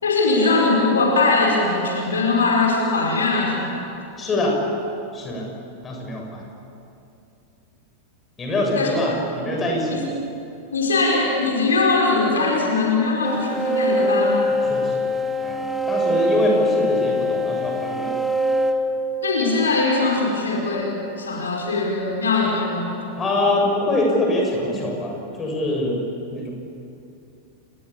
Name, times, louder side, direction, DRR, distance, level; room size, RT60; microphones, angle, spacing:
voice 1, 0.0-3.8 8.8-8.9 9.9-10.0 10.7-14.4 19.2-23.0, left 3 dB, 70° left, -1 dB, 5.1 m, -21 dB
voice 2, 4.2-4.6 5.1-5.5 5.8-6.4 8.4-10.0 14.6-15.1 15.4-18.1 23.2-26.0 26.3-26.5, left 1 dB, 20° left, 0 dB, 7.3 m, -24 dB
sound 1, 13.2-19.7, left 1 dB, 10° right, 1.7 m, -23 dB
29.5 x 20.5 x 8.7 m, 2.7 s
figure-of-eight pair, 90°, 0 cm